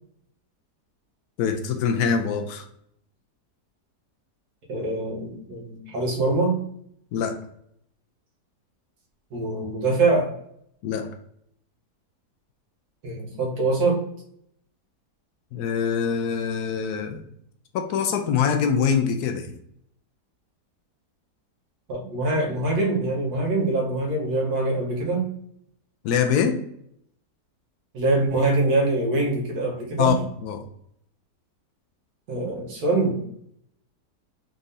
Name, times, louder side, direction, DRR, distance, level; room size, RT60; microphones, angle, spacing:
voice 1, 1.4-2.6 7.1-7.4 10.8-11.1 15.5-17.2 17.7-19.5 26.0-26.6 30.0-30.1 30.4-30.6, left 7 dB, 75° left, 5 dB, 1.1 m, -24 dB
voice 2, 4.7-6.6 9.3-10.3 13.0-14.0 21.9-25.3 27.9-30.2 32.3-33.2, right 2 dB, 70° right, -1 dB, 1.6 m, -24 dB
4.1 x 3.6 x 2.6 m, 0.71 s
omnidirectional pair, 1.8 m